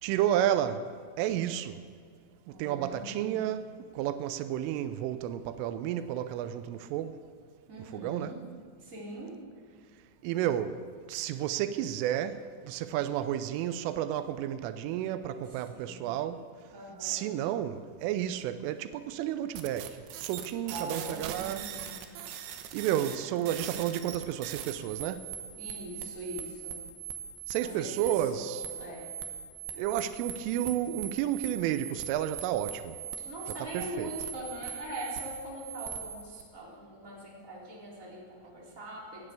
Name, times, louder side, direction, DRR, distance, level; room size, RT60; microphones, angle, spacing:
voice 1, 0.0-0.9 1.2-1.8 2.5-7.3 7.9-8.4 10.2-10.8 11.1-16.5 17.0-21.7 22.7-25.3 27.5-28.6 29.8-33.0 33.7-34.1, right 11 dB, 90° right, 3.2 m, -31 dB
voice 2, 2.5-3.5 7.7-8.4 8.8-9.4 15.4-16.1 16.7-17.3 20.7-22.0 23.0-23.4 25.6-26.8 27.6-29.1 33.2-39.3, right 1 dB, 20° right, 3.7 m, -42 dB
sound 1, 19.5-36.4, right 9 dB, 70° right, 2.7 m, -41 dB
17.5 x 9.9 x 8.0 m
omnidirectional pair, 5.6 m